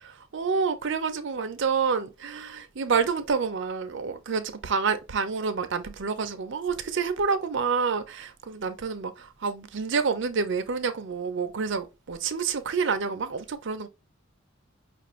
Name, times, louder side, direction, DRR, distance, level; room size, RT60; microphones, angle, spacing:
voice 1, 0.3-13.9, right 5 dB, 60° right, 0.6 m, -28 dB
5.1 x 2.5 x 3.0 m
head